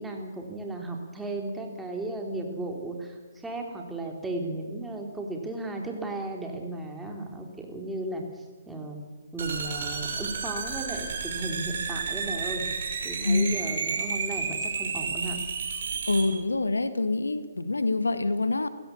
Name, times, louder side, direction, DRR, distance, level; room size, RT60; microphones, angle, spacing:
voice 1, 0.0-9.0 9.3-12.6 13.0-15.4, right 2 dB, 5° right, 1 dB, 3.6 m, -35 dB
sound 1, 9.4-16.2, right 5 dB, 55° right, 5.7 m, -31 dB
voice 2, 13.2-13.6 16.1-18.7, left 2 dB, 80° left, 12 dB, 1.6 m, -26 dB
29.5 x 16.5 x 7.2 m, 1.4 s
figure-of-eight pair, 130°, 0 cm